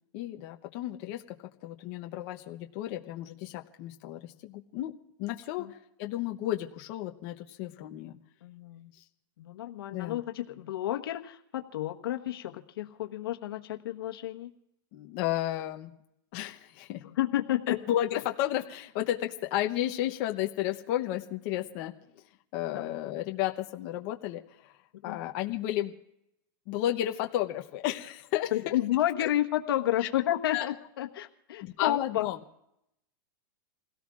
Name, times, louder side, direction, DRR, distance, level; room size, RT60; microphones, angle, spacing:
voice 1, 0.1-1.4 1.6-8.2 8.9-9.0 9.9-10.2 14.9-15.9 16.3-17.0 17.7-21.9 22.5-24.8 25.0-25.9 26.7-28.8 29.2-29.3 30.0-30.1 30.5-30.7 31.6-32.4, left 13 dB, 40° left, 3 dB, 0.9 m, -33 dB
voice 2, 8.4-8.9 9.4-14.5 17.0-17.8 22.7-22.9 25.0-25.2 28.5-32.3, left 13 dB, 80° left, 4 dB, 1.3 m, -31 dB
29.0 x 17.5 x 2.5 m, 0.82 s
supercardioid pair, 155°, 12 cm